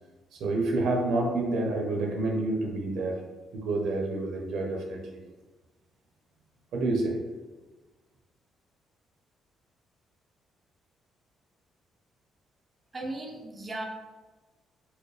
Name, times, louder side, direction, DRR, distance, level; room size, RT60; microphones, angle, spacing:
voice 1, 0.4-3.2 3.5-5.2 6.7-7.2, right 2 dB, 75° right, 0 dB, 0.7 m, -28 dB
voice 2, 12.9-13.8, right 2 dB, 25° right, -1 dB, 0.5 m, -36 dB
4.3 x 2.1 x 3.2 m, 1.2 s
cardioid pair, 100°, 0 cm